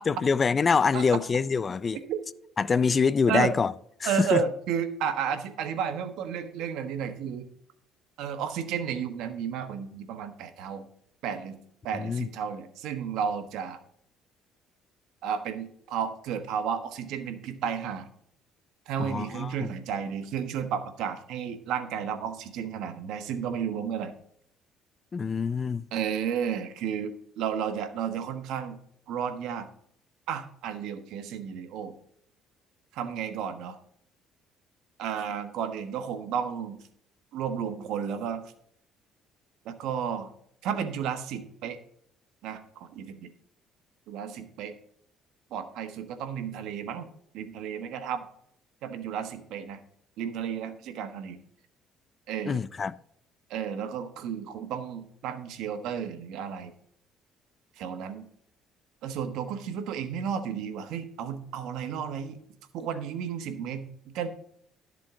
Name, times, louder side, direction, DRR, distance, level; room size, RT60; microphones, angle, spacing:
voice 1, 0.1-2.0 2.6-3.7 4.0-4.4 11.9-12.3 19.0-19.7 25.1-25.9 52.4-52.9, left 5 dB, 30° left, 0.4 m, -25 dB
voice 2, 4.0-7.5 8.2-10.8 11.2-11.6 11.8-13.8 15.2-18.1 18.9-24.1 25.9-28.8 29.1-29.7 30.3-31.9 32.9-33.8 35.0-36.8 37.3-38.4 39.6-40.3 40.6-41.8 42.4-43.3 44.1-44.7 45.5-47.1 47.3-48.2 48.8-49.8 50.2-51.4 52.3-52.6 53.5-56.7 57.8-58.2 59.0-62.4 62.7-64.3, right 8 dB, 80° right, 1.3 m, -32 dB
12.5 x 7.6 x 3.8 m
cardioid pair, 105°, 0 cm